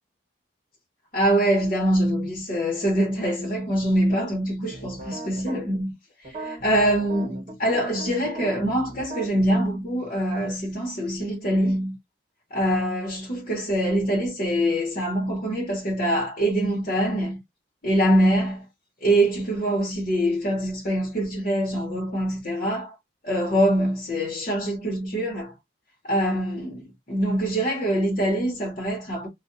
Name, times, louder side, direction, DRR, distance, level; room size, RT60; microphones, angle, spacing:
voice 1, 1.1-5.9 6.2-12.0 12.5-17.4 17.8-18.6 19.0-22.9 23.2-25.5 26.0-29.3, right 1 dB, 45° left, 1.1 m, -24 dB
sound 1, 4.7-5.6 6.2-9.6, right 2 dB, 35° right, 1.3 m, -38 dB
2.4 x 2.4 x 2.5 m
head